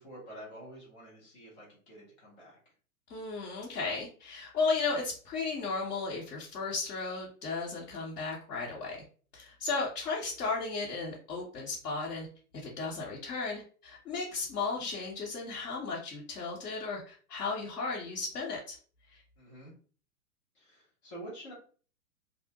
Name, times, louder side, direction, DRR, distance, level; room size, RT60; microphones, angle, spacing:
voice 1, 0.0-2.6 19.4-19.7 20.5-21.5, right 1 dB, 10° left, -5 dB, 0.3 m, -48 dB
voice 2, 3.1-9.0 9.3-12.3 12.5-18.8 19.1-19.2, left 4 dB, 85° left, -5 dB, 0.9 m, -35 dB
2.6 x 2.1 x 2.7 m, 0.41 s
hypercardioid pair, 120°, 46 cm